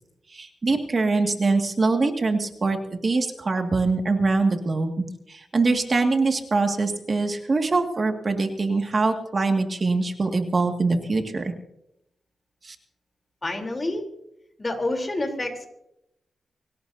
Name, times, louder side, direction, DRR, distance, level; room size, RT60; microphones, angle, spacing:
voice 1, 0.3-4.9 5.3-11.5 12.6-12.8, right 3 dB, 40° right, 4 dB, 1.9 m, -23 dB
voice 2, 13.4-14.0 14.6-15.7, left 2 dB, 30° left, 3 dB, 3.4 m, -28 dB
24.5 x 17.5 x 2.7 m, 0.80 s
cardioid pair, 80°, 0 cm